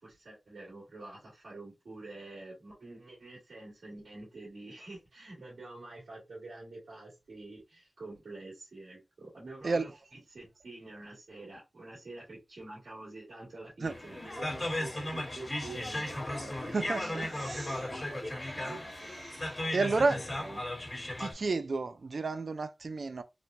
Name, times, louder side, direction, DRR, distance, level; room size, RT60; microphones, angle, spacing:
voice 1, 0.0-9.9 10.3-19.2 19.9-20.6, right 2 dB, 85° right, 2.1 m, -47 dB
sound 1, 13.8-21.3, left 1 dB, 30° left, 1.4 m, -36 dB
voice 2, 16.7-17.8 19.2-20.2 21.2-23.2, right 3 dB, 65° right, 0.4 m, -31 dB
4.1 x 2.2 x 2.6 m
wide cardioid pair, 70°, 0 cm